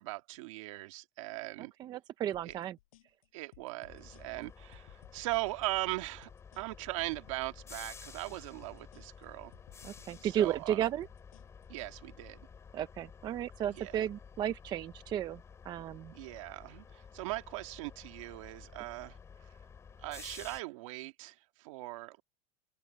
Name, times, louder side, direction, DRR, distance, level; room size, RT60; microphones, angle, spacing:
voice 1, 0.0-1.7 2.4-2.6 3.3-6.3 6.6-9.5 10.2-10.8 11.7-12.4 13.7-14.0 16.1-19.2 20.0-22.2, right 21 dB, 65° right, 2.0 m, -39 dB
voice 2, 1.6-2.8 9.8-11.1 12.7-16.1, right 11 dB, 25° right, 0.6 m, -34 dB
sound 1, 2.3-11.9, left 17 dB, 85° left, 6.7 m, -61 dB
sound 2, 3.9-20.6, left 6 dB, 15° left, 4.6 m, -52 dB
open air
supercardioid pair, 170°, 17 cm